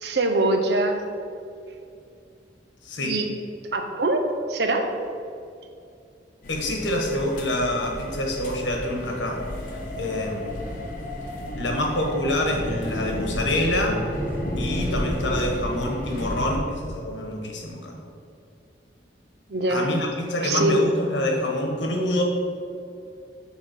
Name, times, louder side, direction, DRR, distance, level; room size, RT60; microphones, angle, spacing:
voice 1, 0.0-1.0 3.0-3.3 3.7-4.9 19.5-19.9 20.4-20.9, right 2 dB, 65° right, 5 dB, 0.8 m, -23 dB
voice 2, 2.8-3.2 6.5-9.4 9.9-10.6 11.5-14.0 14.6-18.0 19.7-22.2, left 1 dB, 85° left, 1 dB, 1.3 m, -26 dB
sound 1, 6.4-16.6, left 1 dB, 45° left, 1.0 m, -31 dB
7.3 x 3.6 x 6.3 m, 2.4 s
head